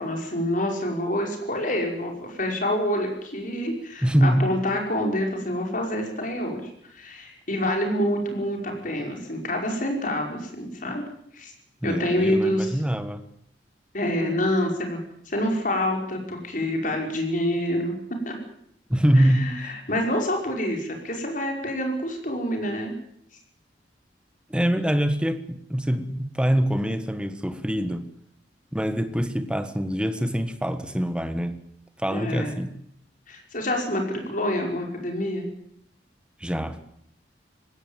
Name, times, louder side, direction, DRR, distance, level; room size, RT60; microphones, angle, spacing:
voice 1, 0.0-11.0 11.3-11.5 11.8-12.8 13.9-15.0 15.3-17.9 18.3-18.4 19.2-22.9 32.1-32.5 33.3-35.5, left 1 dB, 45° left, 5.4 m, -27 dB
voice 2, 4.0-4.5 11.8-13.3 18.9-19.5 24.5-28.1 28.7-31.6 32.0-32.7 36.4-36.8, equal, 5° right, 1.4 m, -24 dB
20.0 x 16.5 x 9.1 m
head